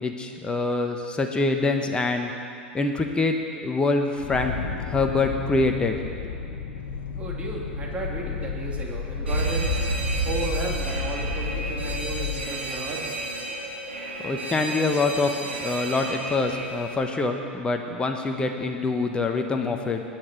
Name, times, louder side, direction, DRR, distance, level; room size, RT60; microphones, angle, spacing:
voice 1, 0.0-2.3 2.7-3.4 3.6-4.5 4.9-6.0 14.2-15.3 15.6-20.0, left 3 dB, 15° left, 4 dB, 1.1 m, -25 dB
sound 1, 4.2-12.4, left 7 dB, 60° left, 1.4 m, -33 dB
voice 2, 7.2-9.7 10.2-13.1, right 2 dB, 20° right, -2 dB, 3.0 m, -34 dB
Alarm, 9.3-17.0, right 2 dB, 80° right, 2.8 m, -30 dB
20.0 x 9.6 x 4.5 m, 2.4 s
figure-of-eight pair, 85°, 6 cm